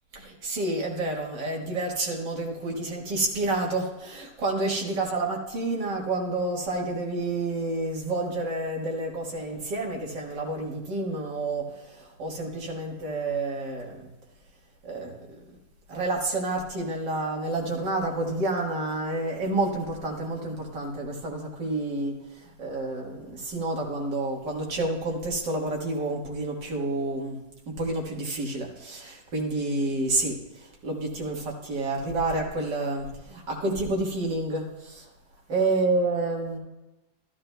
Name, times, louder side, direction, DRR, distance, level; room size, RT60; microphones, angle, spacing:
voice 1, 0.1-14.1 14.8-15.6 15.9-27.4 27.7-35.1 35.5-36.6, right 2 dB, 80° right, -1 dB, 2.2 m, -29 dB
12.5 x 12.0 x 2.2 m, 1.0 s
omnidirectional pair, 1.9 m